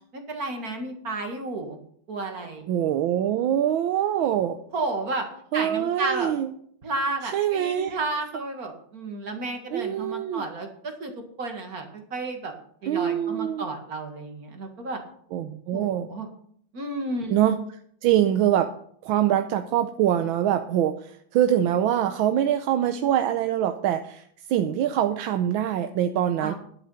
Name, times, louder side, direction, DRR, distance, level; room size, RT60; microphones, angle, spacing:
voice 1, 0.1-1.8 2.1-2.7 4.7-5.3 5.5-6.3 6.8-11.1 11.4-12.5 12.8-15.0 15.7-16.3 16.7-17.4 26.4-26.5, right 2 dB, 45° right, 4 dB, 2.2 m, -32 dB
voice 2, 2.7-4.6 5.5-6.5 7.3-8.0 9.7-10.4 12.9-13.6 15.3-16.1 17.3-17.6 18.0-18.7 19.0-26.5, right 10 dB, 80° right, 8 dB, 1.5 m, -24 dB
11.0 x 8.6 x 5.6 m, 0.63 s
omnidirectional pair, 2.2 m